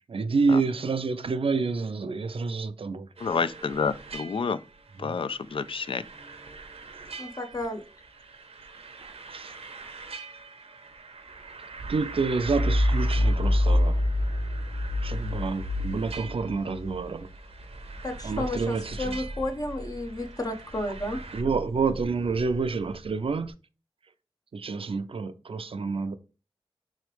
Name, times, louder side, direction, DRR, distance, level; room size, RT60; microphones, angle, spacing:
voice 1, 0.1-3.1 9.3-9.5 11.9-14.0 15.0-17.3 18.2-19.2 21.3-23.5 24.5-26.2, right 4 dB, 65° right, 0.5 m, -28 dB
voice 2, 3.2-4.6 5.0-6.0, left 5 dB, 60° left, 0.4 m, -29 dB
sound 1, 3.2-21.4, right 4 dB, 85° right, 0.8 m, -44 dB
voice 3, 7.2-7.8 18.0-21.2, left 1 dB, 40° left, 0.8 m, -32 dB
sound 2, 12.1-20.3 20.7-23.3, left 1 dB, 80° left, 1.0 m, -28 dB
3.8 x 3.2 x 3.1 m
wide cardioid pair, 55°, 10 cm